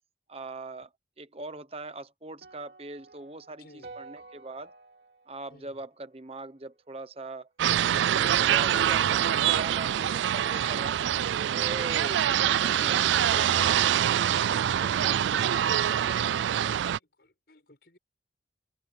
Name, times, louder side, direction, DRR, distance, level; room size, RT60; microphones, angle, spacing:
voice 1, 0.3-4.7 5.3-7.5 7.9-11.0 11.5-16.3, right 2 dB, 35° right, 1.0 m, -42 dB
sound 1, 2.4-6.7, right 3 dB, 60° right, 2.8 m, -51 dB
voice 2, 3.6-4.0 5.5-5.8 9.7-10.3 11.8-12.3 16.6-18.0, left 1 dB, 60° left, 6.5 m, -55 dB
sound 2, 7.6-17.0, right 10 dB, 85° right, 0.3 m, -25 dB
head